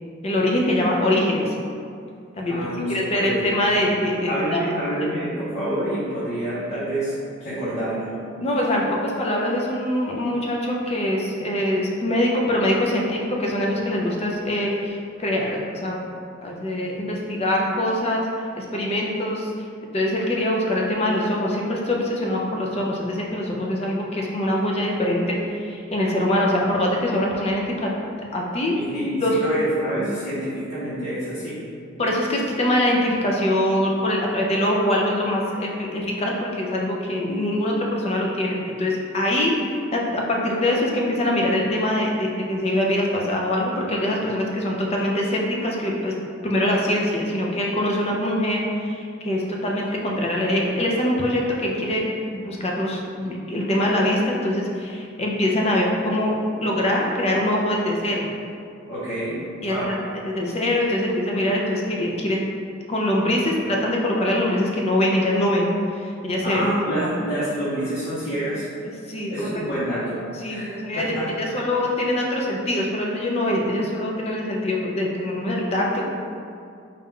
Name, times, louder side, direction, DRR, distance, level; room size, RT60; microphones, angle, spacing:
voice 1, 0.2-1.5 2.4-2.6 2.9-4.6 5.0-5.1 8.4-16.0 16.4-18.3 18.6-19.5 19.9-27.9 28.3-28.8 29.2-29.4 32.0-46.1 46.4-52.1 52.3-58.3 59.6-59.9 60.3-62.4 62.9-65.7 66.0-66.6 66.9-67.1 69.1-69.6 70.4-76.1, left 1 dB, 30° left, -2 dB, 0.5 m, -23 dB
voice 2, 2.5-3.4 4.3-7.1 7.4-8.1 28.7-31.6 58.9-59.3 59.7-59.9 66.4-68.7 69.3-70.2 70.5-71.6, right 1 dB, 55° left, -12 dB, 1.0 m, -27 dB
4.3 x 2.4 x 3.6 m, 2.4 s
head